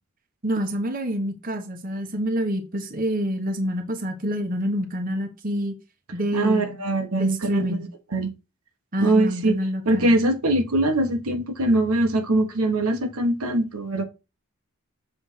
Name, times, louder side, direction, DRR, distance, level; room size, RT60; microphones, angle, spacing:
voice 1, 0.4-5.7 6.1-6.8 7.1-7.9 8.9-10.1, equal, 40° right, 1.1 m, -27 dB
voice 2, 6.3-8.3 9.0-9.6 9.9-14.0, right 2 dB, 85° right, 1.3 m, -22 dB
7.1 x 3.5 x 5.6 m
head